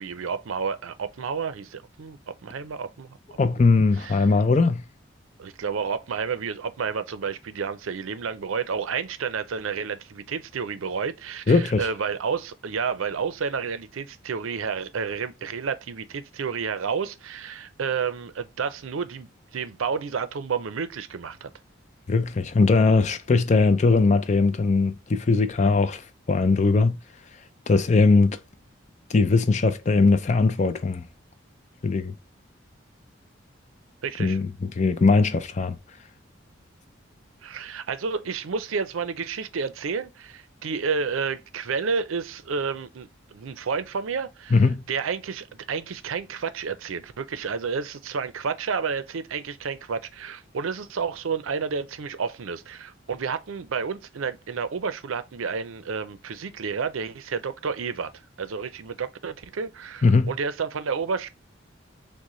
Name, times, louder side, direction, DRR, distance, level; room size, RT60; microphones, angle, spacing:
voice 1, 0.0-3.2 3.5-3.6 4.0-4.2 5.4-21.5 34.0-34.4 37.4-44.6 44.9-58.1 58.4-61.3, right 5 dB, 85° right, 0.5 m, -30 dB
voice 2, 3.4-4.8 11.5-11.9 22.1-26.0 26.3-27.0 27.7-28.4 29.1-31.0 31.8-32.1 34.2-35.8 44.5-44.8 60.0-60.3, left 3 dB, 35° left, 0.4 m, -20 dB
6.4 x 2.1 x 3.0 m
head